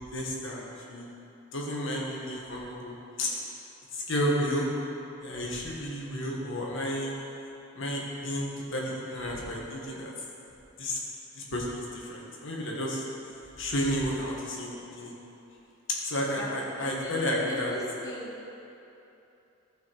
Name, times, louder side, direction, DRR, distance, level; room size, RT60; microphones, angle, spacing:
voice 1, 0.1-1.0 1.5-3.3 3.9-4.7 5.2-7.1 7.8-10.1 10.8-11.0 11.3-13.0 13.6-15.2 16.0-17.7, equal, 65° left, -3 dB, 1.7 m, -32 dB
voice 2, 16.8-17.1 17.5-18.3, left 2 dB, 15° left, -5 dB, 1.1 m, -37 dB
15.0 x 5.7 x 4.6 m, 2.9 s
head